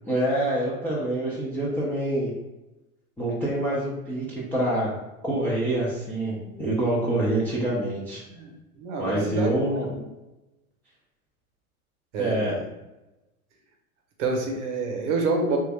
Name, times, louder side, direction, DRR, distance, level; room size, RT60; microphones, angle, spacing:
voice 1, 0.1-2.3 3.2-4.9 5.2-8.2 9.0-9.9 12.2-12.6, right 1 dB, 5° left, -8 dB, 0.4 m, -26 dB
voice 2, 8.8-10.0 12.1-12.6 14.2-15.6, right 3 dB, 50° right, 2 dB, 0.9 m, -28 dB
3.2 x 2.4 x 3.3 m, 1.0 s
figure-of-eight pair, 90°, 44 cm